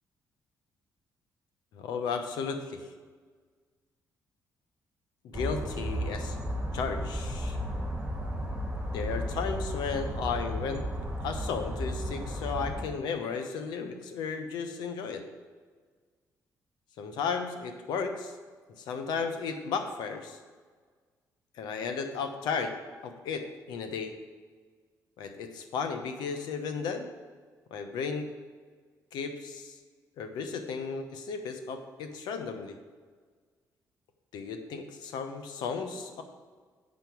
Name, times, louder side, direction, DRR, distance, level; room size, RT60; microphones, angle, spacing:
voice 1, 1.7-2.9 5.2-6.4 6.7-7.6 8.9-10.9 11.2-15.2 17.0-18.3 18.8-20.4 21.5-22.8 23.0-24.1 25.2-27.1 27.7-28.3 29.1-29.8 30.2-32.8 34.3-36.2, left 5 dB, 85° left, 7 dB, 1.0 m, -34 dB
sound 1, 5.3-12.8, equal, 15° right, 2.6 m, -34 dB
7.5 x 5.8 x 6.2 m, 1.5 s
cardioid pair, 85°, 7 cm